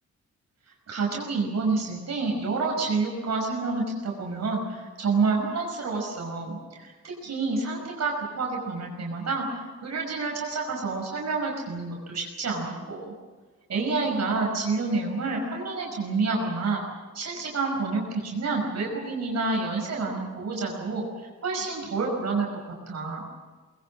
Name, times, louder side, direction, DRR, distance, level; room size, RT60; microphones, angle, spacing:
voice 1, 0.9-13.1 13.7-16.8 17.1-23.2, right 3 dB, 60° right, -1 dB, 5.7 m, -28 dB
24.0 x 21.5 x 7.6 m, 1.4 s
wide cardioid pair, 140°, 30 cm